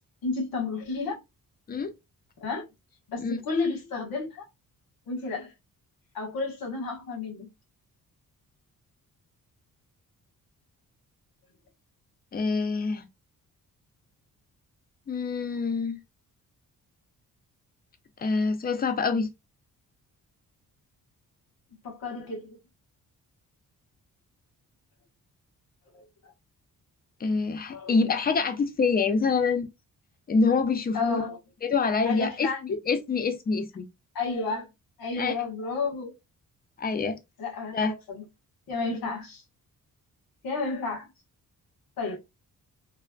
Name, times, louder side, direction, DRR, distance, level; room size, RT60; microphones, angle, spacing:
voice 1, 0.2-1.2 2.4-2.6 3.1-4.4 5.1-5.5 6.1-7.5 21.8-22.6 25.9-26.3 27.7-27.9 30.9-31.4 32.0-32.8 34.1-34.7 35.0-36.1 37.4-38.2 38.7-39.4 40.4-41.1 42.0-42.2, left 4 dB, 85° left, 1.5 m, -31 dB
voice 2, 12.3-13.1 15.1-16.0 18.2-19.3 27.2-29.7 30.3-31.2 31.6-32.5 32.9-33.9 35.1-35.3 36.8-37.2 37.7-37.9, left 4 dB, 25° left, 0.4 m, -26 dB
3.3 x 2.1 x 2.3 m
cardioid pair, 120°, 34 cm